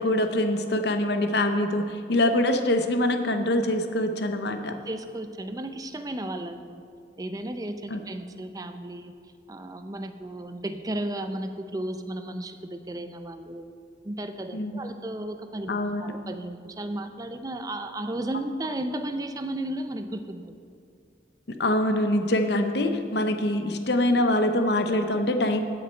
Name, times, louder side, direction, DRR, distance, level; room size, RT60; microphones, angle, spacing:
voice 1, 0.0-4.7 7.9-8.0 14.5-14.9 15.7-16.1 21.6-25.6, left 1 dB, 60° left, 7 dB, 0.7 m, -24 dB
voice 2, 4.9-6.8 7.2-9.1 9.5-13.7 14.0-15.7 16.0-20.6, right 1 dB, 20° right, 8 dB, 0.5 m, -34 dB
15.5 x 6.4 x 4.4 m, 2.3 s
head